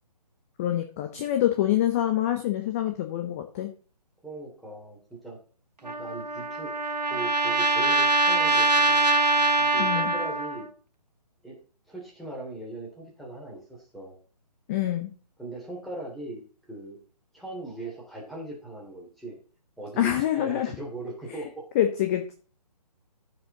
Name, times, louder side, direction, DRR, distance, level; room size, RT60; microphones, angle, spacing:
voice 1, 0.6-3.7 9.8-10.1 14.7-15.1 20.0-20.7 21.7-22.3, left 12 dB, 20° left, 5 dB, 0.8 m, -26 dB
voice 2, 4.2-5.4 5.8-6.7 7.1-10.7 11.4-11.6 11.9-14.1 15.4-16.4 16.7-17.0 17.3-19.4 19.8-21.6, right 2 dB, ahead, -4 dB, 2.9 m, -39 dB
Trumpet, 5.9-10.7, right 2 dB, 75° right, 1.3 m, -23 dB
14.0 x 5.5 x 3.9 m, 0.39 s
figure-of-eight pair, 140°, 21 cm